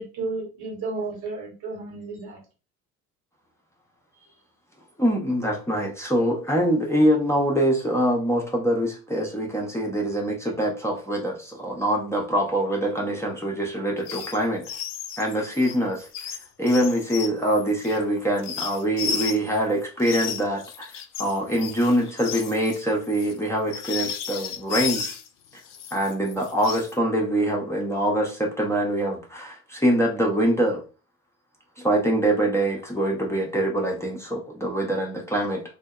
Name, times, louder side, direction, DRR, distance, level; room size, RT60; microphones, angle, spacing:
voice 1, 0.0-2.4, right 3 dB, 65° right, 1.1 m, -32 dB
voice 2, 5.0-14.6 15.2-16.1 16.6-25.2 25.9-30.8 31.8-35.6, right 1 dB, 5° left, 0.6 m, -24 dB
sound 1, 14.0-14.4 14.6-19.6 20.0-25.3 25.7-26.9, left 8 dB, 55° left, 0.5 m, -33 dB
2.6 x 2.0 x 2.3 m
hypercardioid pair, 60°, 42 cm